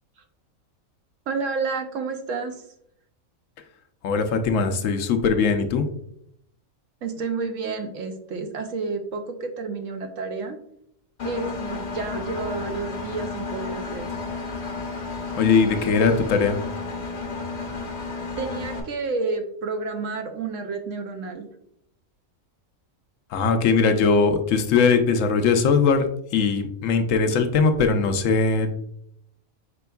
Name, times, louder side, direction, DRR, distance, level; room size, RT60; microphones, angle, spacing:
voice 1, 1.3-2.6 7.0-10.6 11.2-14.1 18.4-21.5, right 4 dB, 70° right, 6 dB, 0.9 m, -30 dB
voice 2, 4.0-5.9 15.4-16.6 23.3-26.0 26.3-28.7, left 5 dB, 70° left, 7 dB, 0.9 m, -20 dB
Engine, 11.2-18.8, left 3 dB, 40° left, 0.7 m, -32 dB
5.1 x 4.5 x 2.3 m, 0.71 s
omnidirectional pair, 1.4 m